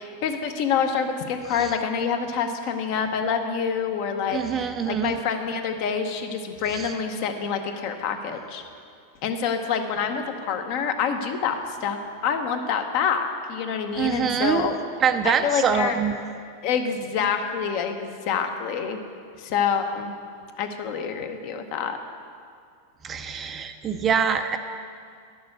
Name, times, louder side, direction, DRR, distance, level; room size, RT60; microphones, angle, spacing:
voice 1, 0.0-8.6 9.2-14.8 15.2-16.0 16.6-19.0 19.4-20.1 20.6-22.0, left 6 dB, 50° left, 6 dB, 0.9 m, -27 dB
voice 2, 4.3-5.1 6.7-6.9 14.0-14.7 15.0-16.1 23.0-24.6, right 7 dB, 20° right, 8 dB, 0.5 m, -24 dB
10.5 x 6.8 x 6.6 m, 2.3 s
supercardioid pair, 150°, 0 cm